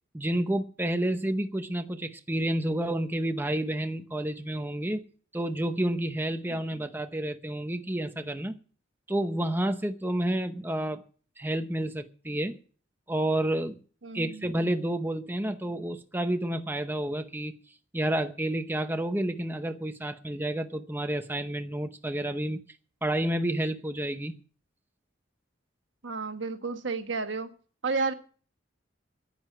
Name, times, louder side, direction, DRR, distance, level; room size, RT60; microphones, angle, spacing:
voice 1, 0.1-5.0 5.3-8.6 9.1-11.0 11.4-12.6 13.1-13.7 14.1-17.5 17.9-22.6 23.0-24.4, right 1 dB, 10° right, 0.8 m, -30 dB
voice 2, 14.0-14.4 26.0-27.5 27.8-28.1, right 4 dB, 65° right, 1.4 m, -31 dB
10.5 x 9.5 x 9.0 m
head